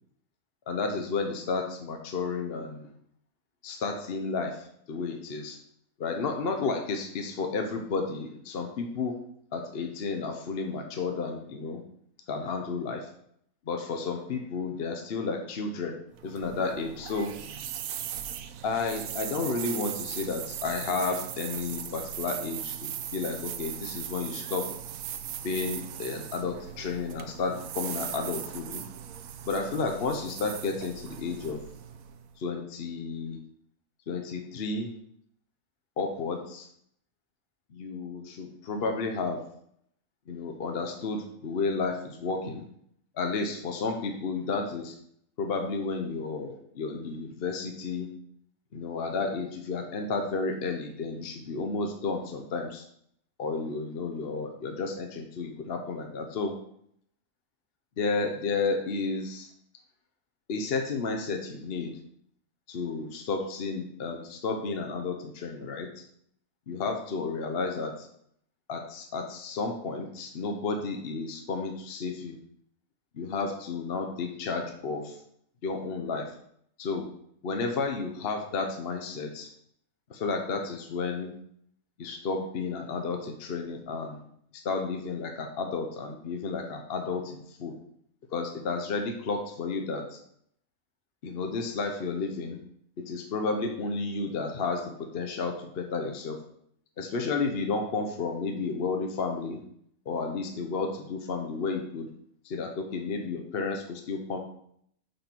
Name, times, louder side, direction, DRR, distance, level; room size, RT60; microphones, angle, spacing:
voice 1, 0.7-2.9 3.6-5.6 6.0-9.2 9.5-11.8 12.3-13.1 13.7-15.9 16.2-17.3 18.6-24.7 25.4-28.8 29.5-31.6 32.4-33.4 34.1-34.9 36.0-36.7 37.7-39.4 40.3-42.6 43.1-44.9 45.4-48.1 48.7-52.8 53.4-56.5 58.0-59.5 60.5-62.0 62.7-65.9 66.7-68.1 68.7-72.4 73.1-75.2 75.6-76.3 76.8-77.1 77.4-79.5 80.1-81.3 82.0-84.2 84.6-87.8 88.3-90.2 91.2-92.6 93.1-96.4 97.0-99.6 100.1-102.1 102.4-104.4, left 4 dB, 50° left, 4 dB, 0.9 m, -32 dB
sound 1, 16.1-32.3, right 10 dB, 80° right, 1.0 m, -38 dB
5.9 x 5.4 x 4.4 m, 0.68 s
omnidirectional pair, 1.4 m